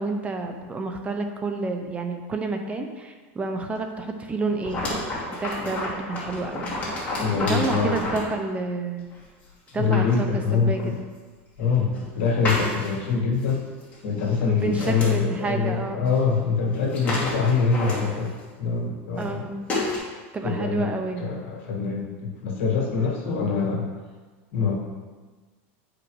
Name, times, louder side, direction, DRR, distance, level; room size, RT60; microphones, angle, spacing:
voice 1, 0.0-4.9 5.4-6.7 7.4-9.1 9.7-10.8 14.5-16.0 19.1-19.7 20.3-21.2 23.0-23.4, right 3 dB, 20° right, 5 dB, 0.6 m, -29 dB
sound 1, 4.6-8.3 9.1-9.2 9.7-10.2 10.8-10.9 11.6-12.1 12.4-13.1 13.4-13.5 13.8-14.0 14.3-15.1 16.0-16.1 16.4-16.5 16.7-18.4 19.1-19.3 19.7-20.0, left 2 dB, 20° left, 2.4 m, -30 dB
voice 2, 7.2-8.0 9.8-10.9 11.6-13.6 14.0-18.3 18.6-19.5 20.4-20.9 21.2-23.9 24.5-24.7, left 5 dB, 80° left, -1 dB, 1.8 m, -24 dB
9.7 x 5.0 x 3.1 m, 1.4 s
supercardioid pair, 130°, 7 cm